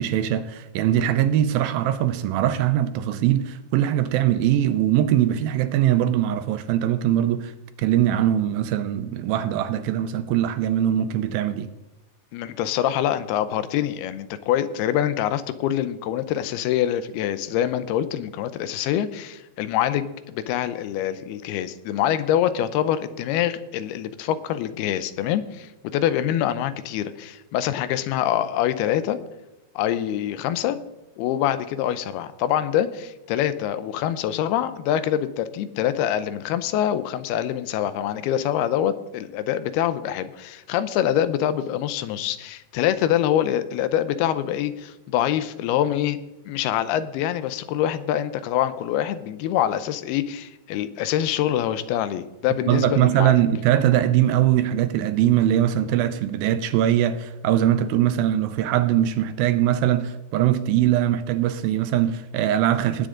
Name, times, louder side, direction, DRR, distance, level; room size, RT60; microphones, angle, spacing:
voice 1, 0.0-7.5 7.8-11.7 52.7-63.1, right 11 dB, 80° right, 2.4 m, -21 dB
voice 2, 12.3-29.2 29.8-30.8 31.2-46.2 46.5-53.3, left 11 dB, 85° left, 2.7 m, -25 dB
19.5 x 8.8 x 3.8 m
omnidirectional pair, 4.4 m